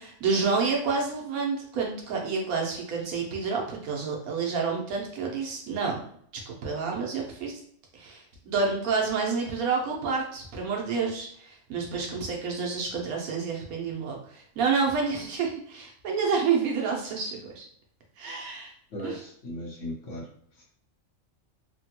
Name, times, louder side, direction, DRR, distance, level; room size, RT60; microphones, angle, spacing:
voice 1, 0.0-6.0 6.5-7.5 7.9-17.6 18.2-18.7 19.0-19.2, right 5 dB, 80° right, 0 dB, 1.2 m, -29 dB
voice 2, 18.9-20.3 20.6-20.7, left 1 dB, 60° left, -3 dB, 1.2 m, -37 dB
3.3 x 2.2 x 2.8 m, 0.62 s
omnidirectional pair, 1.5 m